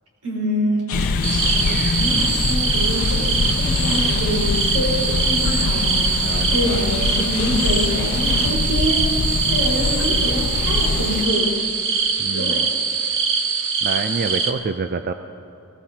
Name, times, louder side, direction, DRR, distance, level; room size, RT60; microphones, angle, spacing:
voice 1, 0.2-1.1 1.4-9.0 9.5-11.6 12.3-12.7, equal, 85° right, -3 dB, 4.4 m, -26 dB
sound 1, 0.9-11.7, left 6 dB, 65° left, 0.9 m, -34 dB
sound 2, 0.9-11.3, left 4 dB, 40° left, 0.4 m, -24 dB
sound 3, 1.2-14.5, right 5 dB, 60° right, 1.1 m, -23 dB
voice 2, 6.2-6.8 12.2-12.7 13.8-15.1, right 4 dB, 45° right, 8 dB, 0.4 m, -27 dB
22.0 x 18.0 x 2.9 m, 2.7 s
head